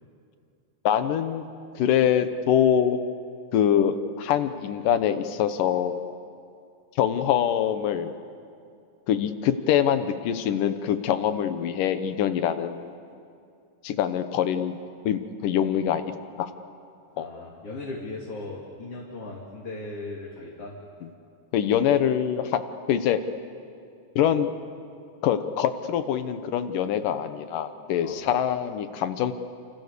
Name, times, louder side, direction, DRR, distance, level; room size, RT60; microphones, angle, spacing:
voice 1, 0.8-1.5 1.7-3.0 3.5-6.0 7.0-8.1 9.1-12.9 13.8-14.8 15.1-16.0 16.4-16.5 17.2-17.3 21.5-22.6 22.9-23.2 24.2-24.5 25.2-29.3, left 9 dB, 85° left, 10 dB, 2.8 m, -24 dB
voice 2, 17.2-20.8 28.0-28.2, left 2 dB, 45° left, -3 dB, 3.5 m, -37 dB
30.0 x 27.5 x 6.8 m, 2.4 s
omnidirectional pair, 3.7 m